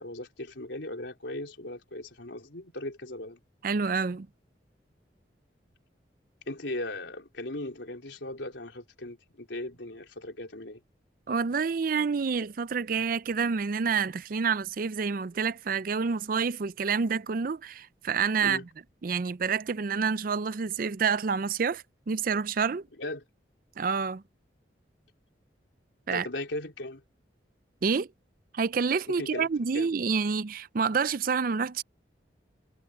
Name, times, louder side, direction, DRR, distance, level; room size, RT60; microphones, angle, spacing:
voice 1, 0.0-3.4 6.5-10.8 18.4-18.7 23.0-23.2 26.1-27.0 29.1-29.5 29.7-29.9, left 1 dB, 85° left, 3.7 m, -38 dB
voice 2, 3.6-4.3 11.3-18.6 19.0-22.8 23.8-24.2 26.1-26.3 27.8-28.1 28.5-31.8, right 5 dB, 50° right, 0.5 m, -28 dB
head